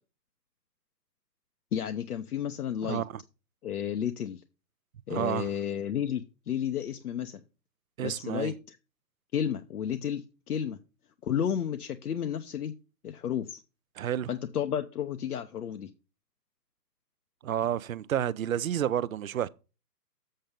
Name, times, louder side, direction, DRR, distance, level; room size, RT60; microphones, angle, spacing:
voice 1, 1.7-3.0 3.6-4.4 5.1-7.4 8.0-8.8 9.3-10.2 10.5-10.8 11.2-12.7 13.0-13.6 14.3-15.9, left 9 dB, 60° left, 1.0 m, -32 dB
voice 2, 2.8-3.2 5.1-5.5 8.0-8.5 14.0-14.3 17.4-19.5, right 10 dB, 55° right, 0.6 m, -30 dB
7.8 x 5.7 x 5.1 m
hypercardioid pair, 160°, 50 cm